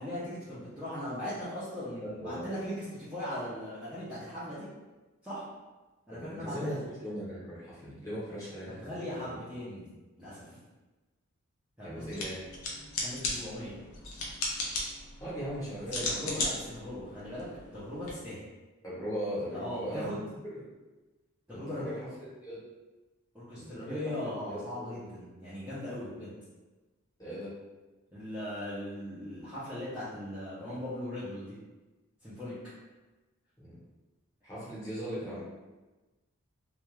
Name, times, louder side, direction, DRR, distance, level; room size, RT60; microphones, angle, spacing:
voice 1, 0.0-4.7 5.2-5.4 6.1-6.8 8.8-9.9 10.2-10.4 11.8-12.2 13.0-13.8 15.9-17.5 17.7-18.4 19.5-20.2 21.5-22.0 23.3-26.3 28.1-31.6 32.2-32.6, left 1 dB, 5° right, -13 dB, 0.5 m, -39 dB
voice 2, 2.0-2.4 6.1-9.0 9.2-9.4 11.8-12.4 15.2-16.3 18.8-20.2 20.5-20.7 21.5-22.1 22.4-22.6 23.5-25.0 27.2-27.5 33.6-33.8 34.4-35.4, equal, 15° left, -10 dB, 0.9 m, -39 dB
sound 1, 12.0-18.1, left 2 dB, 90° left, 0.6 m, -37 dB
2.3 x 2.3 x 3.0 m, 1.2 s
head